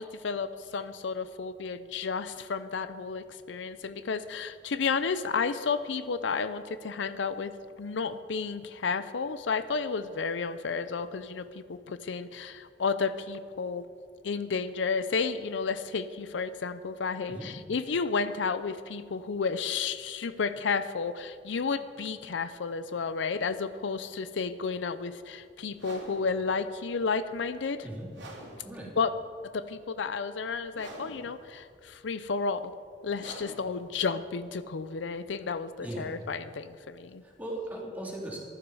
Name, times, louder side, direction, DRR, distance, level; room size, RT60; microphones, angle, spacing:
voice 1, 0.0-13.8 14.2-27.9 29.0-29.2 29.5-32.7 33.0-37.2, left 5 dB, 85° left, 13 dB, 0.5 m, -32 dB
sound 1, 25.7-35.6, right 1 dB, 80° right, 2.7 m, -49 dB
voice 2, 28.6-28.9 35.8-36.1 37.2-38.4, right 1 dB, 10° right, -4 dB, 2.9 m, -38 dB
14.5 x 12.0 x 4.8 m, 2.2 s
head